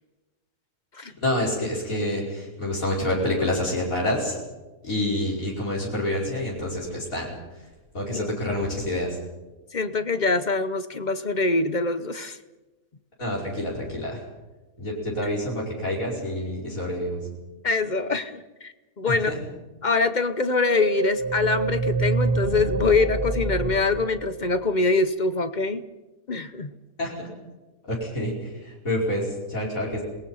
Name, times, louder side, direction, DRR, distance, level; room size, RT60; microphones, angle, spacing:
voice 1, 1.0-4.4 4.8-7.4 7.9-9.2 13.2-14.2 14.8-17.3 19.1-19.4 27.0-27.3 27.8-30.0, left 1 dB, 60° left, -4 dB, 5.7 m, -28 dB
voice 2, 8.1-8.7 9.7-12.4 17.6-19.3 19.8-25.8 26.3-26.7, left 3 dB, 35° left, 11 dB, 0.9 m, -24 dB
sound 1, 20.3-24.9, right 3 dB, 35° right, 2.2 m, -27 dB
28.0 x 19.5 x 5.7 m, 1.1 s
omnidirectional pair, 1.6 m